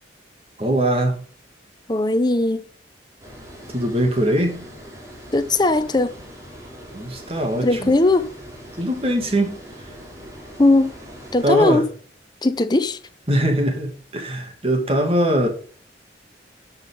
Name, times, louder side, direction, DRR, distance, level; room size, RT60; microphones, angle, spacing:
voice 1, 0.6-1.2 3.7-4.6 6.9-7.9 8.8-9.9 11.4-11.8 13.3-15.5, right 1 dB, 30° right, 2.4 m, -21 dB
voice 2, 1.9-2.6 5.3-6.1 7.6-8.3 10.6-10.9 11.3-11.9 12.4-13.0, left 2 dB, 25° left, 0.8 m, -18 dB
Water, 3.2-11.6, equal, 15° right, 3.0 m, -41 dB
12.5 x 5.8 x 3.8 m
head